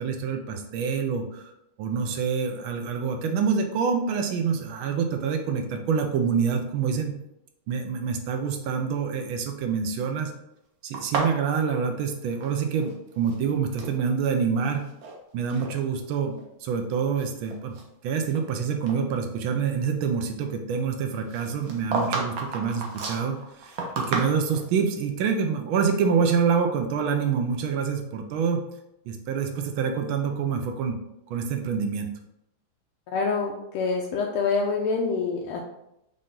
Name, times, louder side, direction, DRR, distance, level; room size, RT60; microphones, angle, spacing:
voice 1, 0.0-1.5 1.8-7.2 7.7-10.3 10.8-14.9 15.3-17.7 18.0-28.7 29.1-31.0 31.3-32.1, right 6 dB, 75° right, 5 dB, 1.3 m, -26 dB
sound 1, 10.9-12.9 13.2-14.0 14.6-15.2 15.5-15.7 16.4-16.5 17.0-18.5 18.9-19.0 21.3-24.7, right 3 dB, 60° right, 1.0 m, -32 dB
voice 2, 33.1-35.6, left 4 dB, 85° left, -1 dB, 1.5 m, -26 dB
5.7 x 2.5 x 3.7 m, 0.83 s
omnidirectional pair, 2.3 m